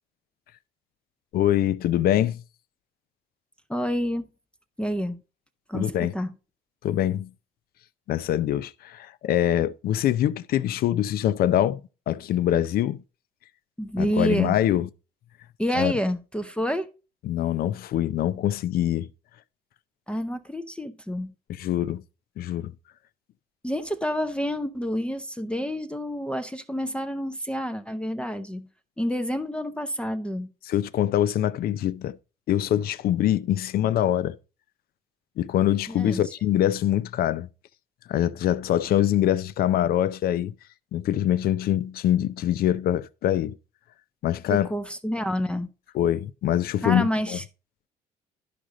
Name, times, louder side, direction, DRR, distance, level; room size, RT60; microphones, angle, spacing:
voice 1, 1.3-2.4 5.7-6.1 6.8-7.3 8.1-11.8 12.1-13.0 14.0-14.9 15.8-15.9 17.2-19.1 21.6-22.0 22.4-22.7 30.7-32.2 32.5-34.4 35.4-37.5 38.1-40.5 40.9-43.6 44.2-44.7 45.9-47.4, left 12 dB, 65° left, 0.5 m, -24 dB
voice 2, 3.7-4.3 4.8-5.2 5.7-6.3 13.8-14.6 15.6-16.9 20.1-21.3 23.6-28.7 29.0-30.5 35.9-36.2 44.5-45.7 46.8-47.4, equal, 5° left, 0.6 m, -28 dB
12.0 x 5.0 x 3.8 m
cardioid pair, 110°, 17 cm